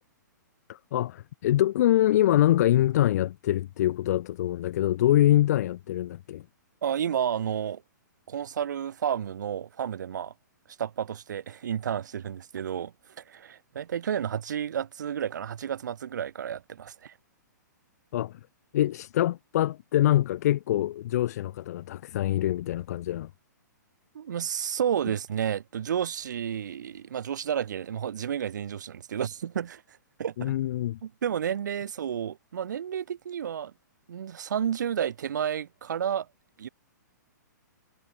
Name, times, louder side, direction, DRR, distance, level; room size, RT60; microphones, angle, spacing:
voice 1, 0.7-6.4 18.1-18.4 18.7-23.3 30.4-31.0, left 13 dB, 55° left, 2.0 m, -24 dB
voice 2, 6.8-7.8 8.3-10.3 10.8-12.9 13.2-17.1 24.1-29.8 30.2-30.5 31.0-33.7 34.1-36.3 36.6-36.7, right 9 dB, 70° right, 3.0 m, -31 dB
hypercardioid pair, 125°, 10 cm